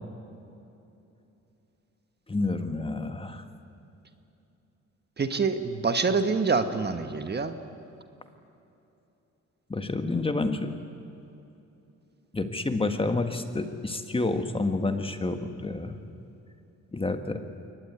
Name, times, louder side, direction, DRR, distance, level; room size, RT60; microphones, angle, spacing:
voice 1, 2.3-3.4 9.7-10.7 12.3-16.0 16.9-17.4, left 2 dB, 20° left, 7 dB, 1.6 m, -29 dB
voice 2, 5.2-7.5, right 4 dB, 35° right, 8 dB, 1.5 m, -26 dB
23.0 x 18.5 x 9.6 m, 2.8 s
cardioid pair, 90°, 30 cm